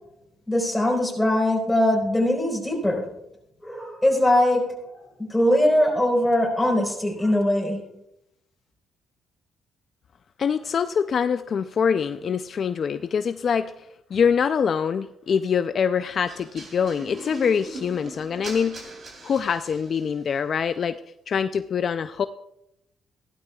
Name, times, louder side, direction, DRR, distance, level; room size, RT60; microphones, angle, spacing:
voice 1, 0.5-3.1 3.6-4.9 5.3-7.9, left 1 dB, 5° left, -1 dB, 4.2 m, -21 dB
voice 2, 10.4-13.9 14.1-18.9 19.2-20.9 21.3-22.3, left 7 dB, 50° left, 10 dB, 0.4 m, -24 dB
sound 1, 16.3-20.2, right 2 dB, 50° right, 3.4 m, -40 dB
16.0 x 12.0 x 2.3 m, 0.83 s
cardioid pair, 90°, 0 cm